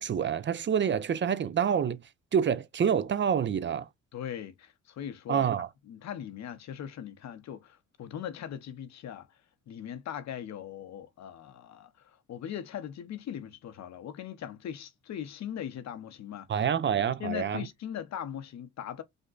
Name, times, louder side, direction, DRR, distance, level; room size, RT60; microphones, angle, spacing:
voice 1, 0.0-2.0 2.3-3.9 5.3-5.7 16.5-17.7, right 8 dB, 40° right, 0.5 m, -27 dB
voice 2, 4.1-5.5 5.9-9.3 9.7-11.9 12.3-16.5 17.0-19.0, left 10 dB, 65° left, 0.8 m, -39 dB
5.2 x 2.2 x 3.8 m
cardioid pair, 90°, 30 cm